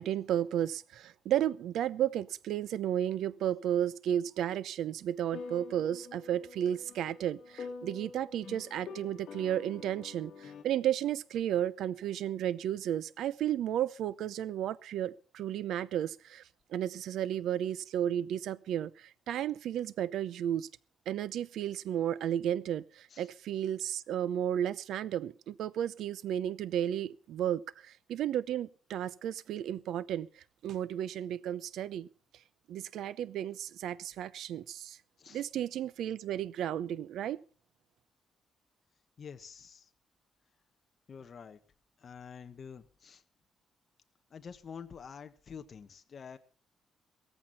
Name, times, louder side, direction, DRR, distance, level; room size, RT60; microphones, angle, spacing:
voice 1, 0.0-16.4 16.7-20.7 21.1-32.1 32.7-35.0 35.3-37.4, right 10 dB, 85° right, 0.7 m, -33 dB
sound 1, 5.3-10.6, left 5 dB, 65° left, 2.3 m, -46 dB
voice 2, 39.2-39.9 41.1-41.6 42.0-43.2 44.3-46.4, left 6 dB, 40° left, 1.3 m, -48 dB
17.0 x 14.5 x 4.2 m
cardioid pair, 145°, 0 cm